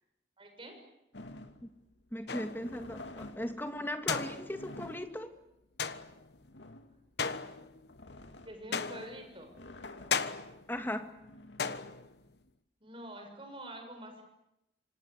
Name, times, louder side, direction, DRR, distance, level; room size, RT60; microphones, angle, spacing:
voice 1, 0.4-0.8 8.4-9.5 12.8-14.2, right 1 dB, 30° right, 5 dB, 7.0 m, -46 dB
sound 1, 1.1-12.5, left 2 dB, 85° left, 2.5 m, -51 dB
voice 2, 2.1-5.3 10.7-11.1, left 1 dB, 10° left, 6 dB, 2.3 m, -38 dB
sound 2, 2.3-2.8 4.1-4.8 5.8-6.3 7.2-7.9 8.7-9.3 10.1-10.7 11.6-12.2, left 5 dB, 70° left, 1.3 m, -36 dB
27.5 x 26.0 x 8.3 m, 0.89 s
head